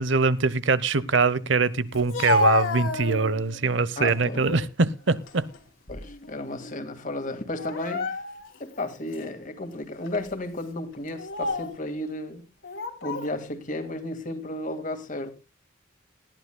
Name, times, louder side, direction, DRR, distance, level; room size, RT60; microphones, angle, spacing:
voice 1, 0.0-5.4, right 4 dB, 65° right, 0.9 m, -23 dB
Speech, 1.9-3.6 4.1-4.7 5.1-6.3 6.6-6.8 7.6-8.6 9.1-9.3 10.0-10.3 11.1-11.8 12.6-13.3, left 3 dB, 80° left, 2.9 m, -29 dB
voice 2, 4.0-4.5 5.9-8.2 8.6-12.4 13.0-15.3, left 1 dB, 40° left, 2.0 m, -33 dB
19.5 x 13.5 x 2.3 m
head